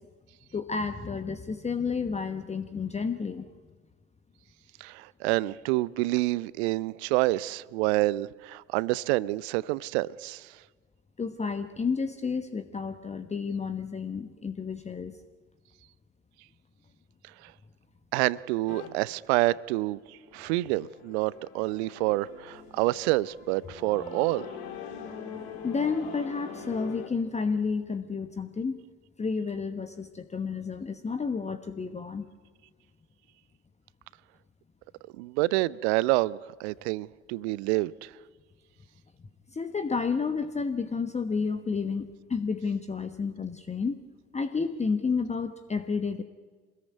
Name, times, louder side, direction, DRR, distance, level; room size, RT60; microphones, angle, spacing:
voice 1, 0.5-3.5 11.2-15.2 25.6-28.8 29.2-32.3 39.5-44.0 44.3-46.2, left 5 dB, 15° left, 1.2 m, -31 dB
voice 2, 4.8-10.5 18.1-20.0 20.3-24.5 35.2-38.1, right 19 dB, 55° right, 0.8 m, -28 dB
sound 1, 18.7-18.9 20.0-27.1, left 7 dB, 60° left, 3.7 m, -43 dB
27.0 x 20.5 x 9.7 m
figure-of-eight pair, 60°, 38 cm